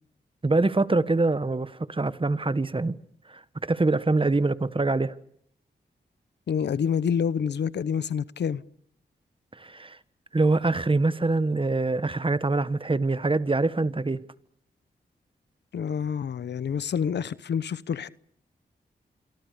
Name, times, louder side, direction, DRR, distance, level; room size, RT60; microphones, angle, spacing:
voice 1, 0.4-3.0 3.6-5.1 9.6-10.0 10.3-14.2, right 3 dB, 30° right, 1.5 m, -24 dB
voice 2, 6.5-8.6 15.7-18.1, left 7 dB, 75° left, 0.9 m, -27 dB
27.0 x 24.0 x 6.8 m
cardioid pair, 50°, 18 cm